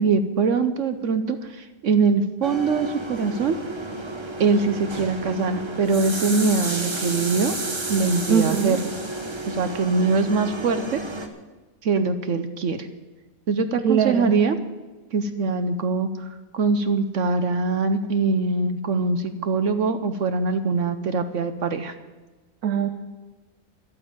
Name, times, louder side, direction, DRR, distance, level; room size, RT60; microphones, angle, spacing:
voice 1, 0.0-3.6 4.4-7.6 7.9-8.9 9.5-11.0 11.8-12.9 13.5-14.6 15.1-21.9, right 4 dB, 60° right, 10 dB, 1.0 m, -23 dB
sound 1, 2.4-11.3, right 2 dB, 20° right, 1.0 m, -31 dB
voice 2, 8.3-8.8 13.8-14.3 22.6-22.9, right 7 dB, 75° right, 8 dB, 1.3 m, -21 dB
12.0 x 9.3 x 8.8 m, 1.2 s
omnidirectional pair, 1.6 m